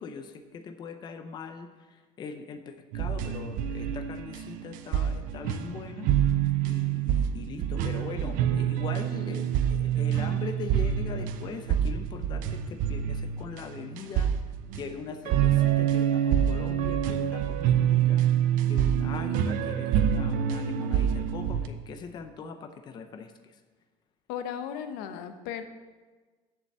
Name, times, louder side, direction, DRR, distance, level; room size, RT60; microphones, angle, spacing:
voice 1, 0.0-6.1 6.6-14.3 14.7-18.3 18.7-23.5, left 5 dB, 30° left, 8 dB, 0.5 m, -41 dB
sound 1, 2.9-21.7, right 10 dB, 60° right, 0.6 m, -27 dB
voice 2, 24.3-25.6, left 8 dB, 85° left, 8 dB, 0.9 m, -36 dB
7.3 x 6.9 x 7.2 m, 1.3 s
cardioid pair, 170°, 16 cm